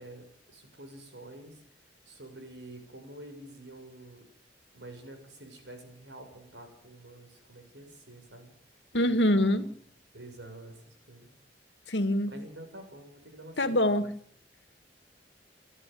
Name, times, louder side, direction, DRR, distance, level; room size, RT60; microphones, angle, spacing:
voice 1, 0.0-1.6 2.1-4.2 4.7-8.5 9.1-9.6 10.1-11.3 12.3-14.1, right 1 dB, 80° right, 5 dB, 7.0 m, -48 dB
voice 2, 8.9-9.7 11.9-12.3 13.6-14.1, left 1 dB, 85° left, 10 dB, 2.2 m, -24 dB
28.5 x 11.0 x 9.4 m, 0.65 s
head